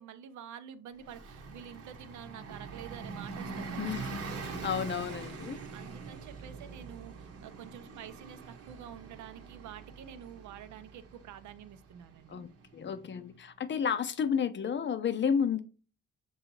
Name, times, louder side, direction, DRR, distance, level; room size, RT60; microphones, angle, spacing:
voice 1, 0.0-4.0 5.7-12.4, right 9 dB, 70° right, 0.5 m, -48 dB
Bus, 1.0-13.3, right 4 dB, 55° right, 0.9 m, -44 dB
voice 2, 3.8-5.6 12.3-12.5 12.7-15.6, left 7 dB, 40° left, 0.5 m, -32 dB
6.4 x 2.7 x 2.9 m
cardioid pair, 90°, 30 cm